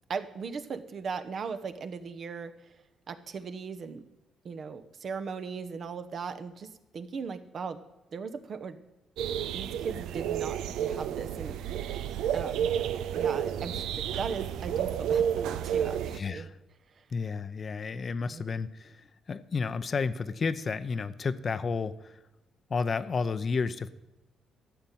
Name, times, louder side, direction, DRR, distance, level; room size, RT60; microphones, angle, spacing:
voice 1, 0.1-2.5 3.1-4.0 4.4-7.8 8.1-8.8 9.5-11.9 12.3-12.7 13.2-16.5 16.9-17.0 18.3-18.4, right 5 dB, 55° right, 10 dB, 1.1 m, -38 dB
sound 1, 9.2-16.2, right 9 dB, 85° right, 0.6 m, -31 dB
voice 2, 16.1-16.6 17.1-22.2 22.7-23.9, left 5 dB, 40° left, 12 dB, 0.7 m, -32 dB
13.5 x 6.8 x 9.2 m, 1.0 s
cardioid pair, 90°, 0 cm